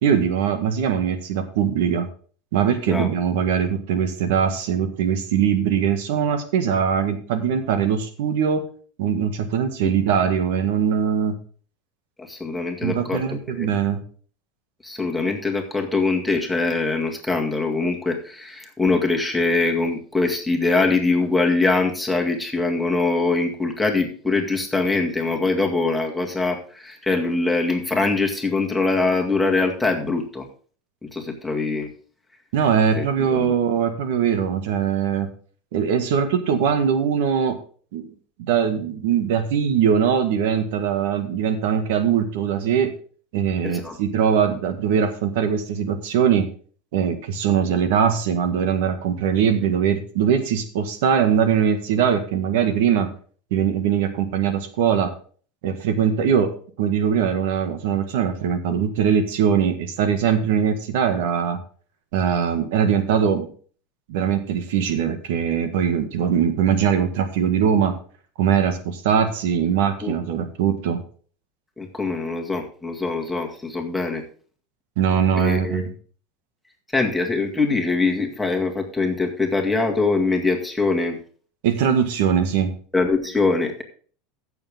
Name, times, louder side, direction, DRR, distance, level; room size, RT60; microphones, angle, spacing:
voice 1, 0.0-2.1 2.5-8.6 9.0-11.4 12.8-14.0 32.5-35.3 35.7-37.6 37.9-38.0 38.4-42.9 43.3-46.5 46.9-53.1 53.5-55.1 55.6-56.5 56.8-61.6 62.1-63.5 64.1-67.9 68.4-71.0 75.0-75.9 81.6-82.7, right 7 dB, 75° right, 8 dB, 1.7 m, -21 dB
voice 2, 12.2-13.8 14.8-30.5 31.0-31.9 33.0-33.5 43.6-44.0 56.2-56.3 70.0-70.2 71.8-74.2 75.3-75.9 76.9-81.2 82.9-83.8, left 3 dB, 5° left, 0 dB, 2.0 m, -23 dB
15.0 x 7.0 x 3.6 m, 0.43 s
supercardioid pair, 140°, 0 cm